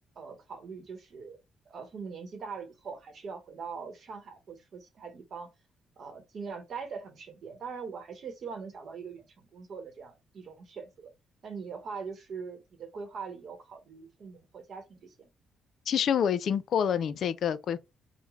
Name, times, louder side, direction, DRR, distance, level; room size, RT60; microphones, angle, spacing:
voice 1, 0.2-1.4 1.7-5.5 6.0-11.1 11.4-15.3, right 5 dB, 55° right, 0.9 m, -42 dB
voice 2, 15.9-17.8, left 8 dB, 65° left, 0.3 m, -27 dB
3.1 x 2.1 x 3.4 m
cardioid pair, 90°, 0 cm